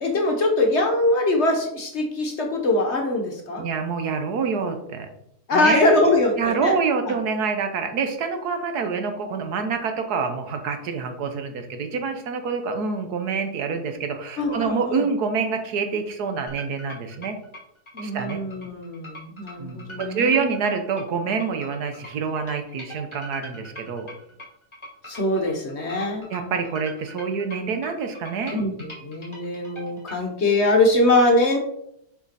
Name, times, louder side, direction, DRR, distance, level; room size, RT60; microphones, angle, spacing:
voice 1, 0.0-3.6 5.5-6.7 7.0-7.1 14.4-15.0 17.9-20.5 25.1-26.3 28.5-31.6, left 2 dB, 45° left, 3 dB, 1.1 m, -22 dB
voice 2, 3.6-5.1 5.5-5.9 6.4-17.4 18.0-18.4 19.6-24.1 26.3-28.6, right 5 dB, 70° right, 6 dB, 1.4 m, -26 dB
sound 1, 16.5-30.2, equal, 15° left, 2.0 m, -42 dB
7.2 x 5.0 x 4.1 m, 0.75 s
omnidirectional pair, 1.8 m